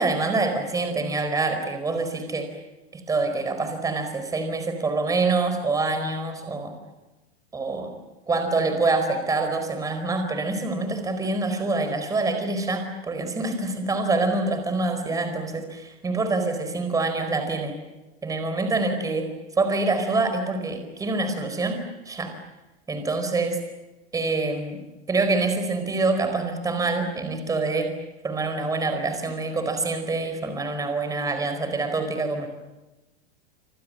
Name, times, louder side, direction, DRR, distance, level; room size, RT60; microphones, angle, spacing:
voice 1, 0.0-2.5 2.9-6.7 7.5-7.9 8.3-17.7 18.2-19.3 19.6-22.3 22.9-23.6 24.1-24.8 25.1-27.9 28.2-32.5, right 3 dB, 10° right, 7 dB, 4.6 m, -26 dB
27.0 x 26.0 x 7.7 m, 1.1 s
supercardioid pair, 155°, 31 cm